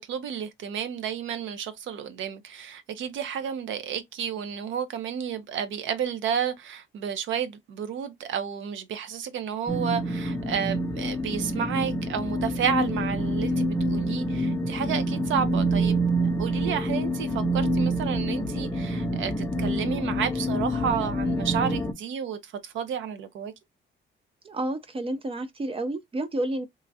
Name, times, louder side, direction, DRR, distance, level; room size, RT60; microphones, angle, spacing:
voice 1, 0.0-16.0 16.4-23.5, right 8 dB, 75° right, 0.6 m, -31 dB
sound 1, 9.7-21.9, right 1 dB, 15° left, 0.6 m, -27 dB
voice 2, 24.4-26.7, right 1 dB, 30° right, 0.5 m, -30 dB
3.0 x 2.3 x 2.5 m
cardioid pair, 90°, 20 cm